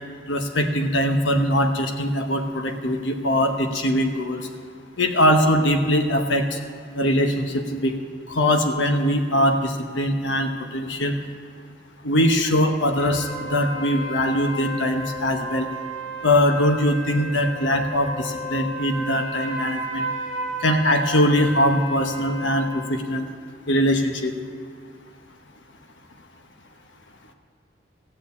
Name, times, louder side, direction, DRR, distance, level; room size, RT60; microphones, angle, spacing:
voice 1, 0.3-4.5 5.0-6.6 6.9-8.0 8.3-11.1 12.0-15.7 16.2-20.1 20.6-23.2 23.7-24.3, equal, 85° left, 5 dB, 1.1 m, -21 dB
sound 1, 13.0-22.9, right 1 dB, 40° left, 3.9 m, -33 dB
16.5 x 7.0 x 8.4 m, 2.3 s
head